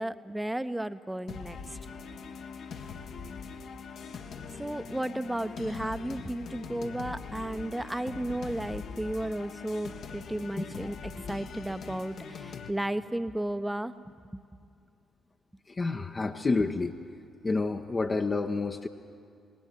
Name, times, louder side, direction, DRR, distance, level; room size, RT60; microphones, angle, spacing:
voice 1, 0.0-1.8 4.5-13.9 14.3-14.4, right 1 dB, 10° right, 12 dB, 1.0 m, -34 dB
sound 1, 1.3-12.7, left 5 dB, 55° left, 1.4 m, -42 dB
voice 2, 15.7-16.9 17.4-18.9, left 3 dB, 30° left, 3 dB, 1.0 m, -29 dB
26.0 x 20.5 x 7.6 m, 2.4 s
figure-of-eight pair, 40°, 0 cm